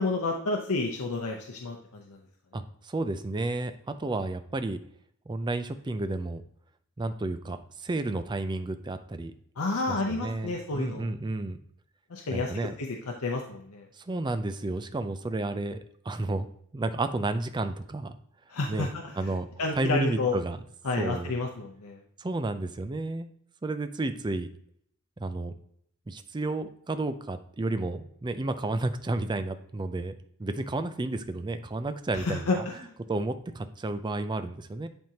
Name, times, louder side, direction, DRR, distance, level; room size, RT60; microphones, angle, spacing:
voice 1, 0.0-2.2 9.6-11.1 12.1-12.5 12.8-13.0 13.2-13.9 18.5-20.3 20.8-22.0 32.1-32.9, left 3 dB, 90° left, 1 dB, 0.7 m, -30 dB
voice 2, 2.5-3.7 4.0-4.8 5.3-6.4 7.0-9.3 9.9-11.6 12.3-12.7 14.0-15.8 16.1-16.5 16.7-18.1 18.7-18.9 19.2-19.5 19.7-20.6 21.0-21.3 22.2-23.3 23.6-24.5 25.2-25.5 26.1-30.1 30.4-32.6 33.1-34.9, right 2 dB, 20° right, 9 dB, 0.4 m, -31 dB
10.5 x 3.6 x 2.8 m, 0.66 s
head